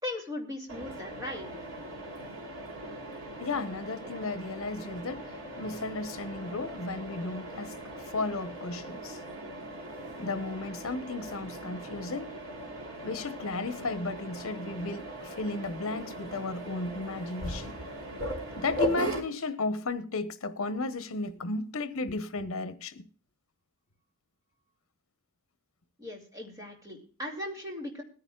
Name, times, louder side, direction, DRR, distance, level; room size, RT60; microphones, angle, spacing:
voice 1, 0.0-1.5 26.0-28.0, left 1 dB, 15° right, 2.5 m, -38 dB
Mechanisms, 0.7-19.2, right 1 dB, 75° right, 2.8 m, -39 dB
voice 2, 3.4-9.2 10.2-12.3 13.0-17.7 18.6-23.0, left 3 dB, 70° left, 1.0 m, -34 dB
21.0 x 9.8 x 2.4 m
head